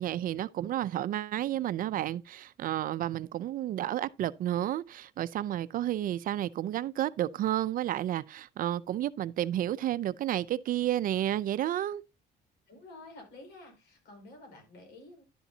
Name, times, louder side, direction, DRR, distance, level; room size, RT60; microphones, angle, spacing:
voice 1, 0.0-12.0, right 12 dB, 55° right, 0.5 m, -31 dB
voice 2, 12.7-15.2, left 2 dB, 75° left, 5.2 m, -50 dB
11.0 x 7.1 x 2.7 m
cardioid pair, 110°, 17 cm